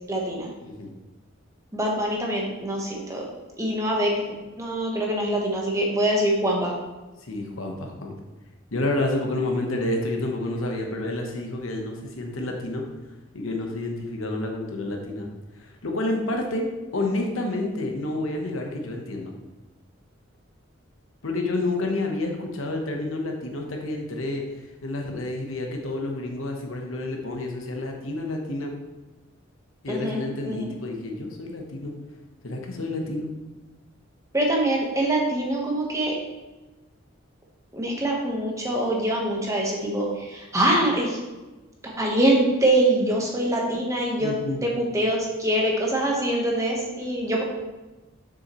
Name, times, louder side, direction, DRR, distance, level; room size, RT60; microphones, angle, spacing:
voice 1, 0.1-0.5 1.7-3.3 3.6-6.7 29.9-30.6 34.3-36.1 37.7-41.2 41.8-44.3 44.6-47.4, right 1 dB, 15° right, -2 dB, 1.2 m, -24 dB
voice 2, 0.6-1.0 7.2-8.1 8.7-12.8 13.3-15.3 15.6-16.7 16.9-19.3 21.2-24.4 24.8-28.7 29.8-31.9 32.4-33.3 44.2-44.7, left 2 dB, 75° left, 2 dB, 1.1 m, -29 dB
7.2 x 6.4 x 3.1 m, 1.1 s
head